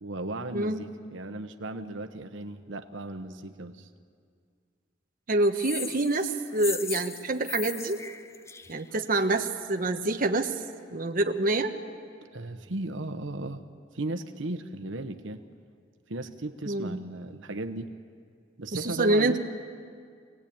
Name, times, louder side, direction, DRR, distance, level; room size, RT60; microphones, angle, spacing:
voice 1, 0.0-3.9 12.3-13.6 13.9-15.4 16.1-17.9 18.6-19.4, right 2 dB, 85° right, 7 dB, 1.1 m, -36 dB
voice 2, 5.3-8.0 8.7-10.5 10.9-11.7 16.7-17.0 18.7-19.4, right 2 dB, 50° right, 4 dB, 1.2 m, -26 dB
sound 1, 5.6-9.4, left 5 dB, 15° left, 0.5 m, -38 dB
25.0 x 18.5 x 8.7 m, 2.1 s
head